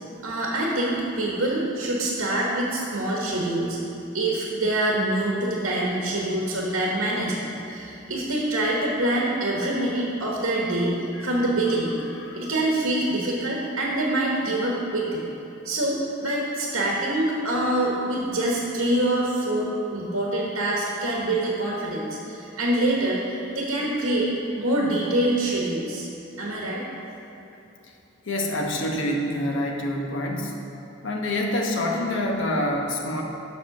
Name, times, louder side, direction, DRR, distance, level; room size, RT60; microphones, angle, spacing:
voice 1, 0.2-3.8 4.1-10.9 11.2-12.0 12.3-15.2 15.6-24.3 24.6-26.0 26.4-26.8, right 1 dB, 75° right, -3 dB, 1.2 m, -25 dB
voice 2, 12.2-12.5 28.3-30.5 31.0-33.2, left 1 dB, 65° left, 1 dB, 0.9 m, -26 dB
7.5 x 6.0 x 5.8 m, 2.8 s
head